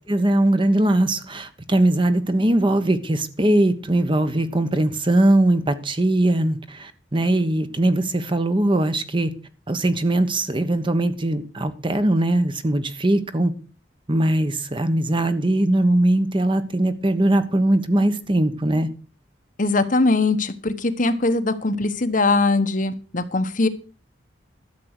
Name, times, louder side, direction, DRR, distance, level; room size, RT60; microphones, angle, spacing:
voice 1, 0.1-9.3 9.7-13.5 14.1-18.9, right 1 dB, 30° right, 1.2 m, -20 dB
voice 2, 19.6-23.7, left 3 dB, 45° left, 1.2 m, -21 dB
13.0 x 7.7 x 6.6 m
head